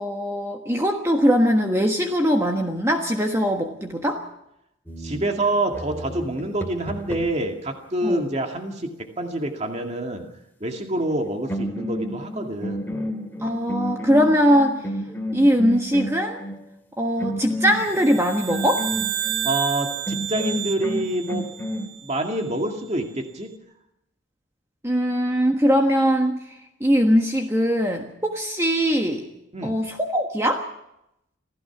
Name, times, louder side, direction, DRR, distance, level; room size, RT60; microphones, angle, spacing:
voice 1, 0.0-4.2 8.0-8.2 13.4-14.8 15.3-16.4 17.0-18.8 24.8-26.4 26.8-29.3 29.6-30.6, equal, 15° right, 3 dB, 1.3 m, -21 dB
sound 1, 4.9-7.5 11.1-11.2 11.5-16.6 17.2-19.5 20.1-21.9, equal, 10° left, 2.7 m, -31 dB
voice 2, 5.0-8.9 9.2-10.2 10.6-12.8 19.4-21.5 22.0-23.5 29.5-29.8, right 1 dB, 35° right, 3 dB, 2.2 m, -26 dB
sound 2, 17.7-22.3, right 10 dB, 80° right, 2.4 m, -31 dB
27.0 x 16.0 x 6.0 m, 0.82 s
head